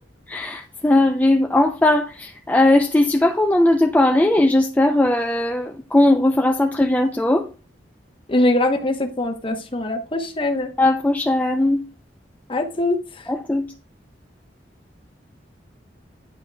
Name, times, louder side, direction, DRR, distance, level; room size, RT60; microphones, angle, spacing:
voice 1, 0.3-7.4 10.8-11.8 13.3-13.7, left 1 dB, 10° left, 0.4 m, -18 dB
voice 2, 8.3-10.7 12.5-13.3, left 1 dB, 30° left, 0.9 m, -22 dB
9.8 x 5.4 x 2.2 m
head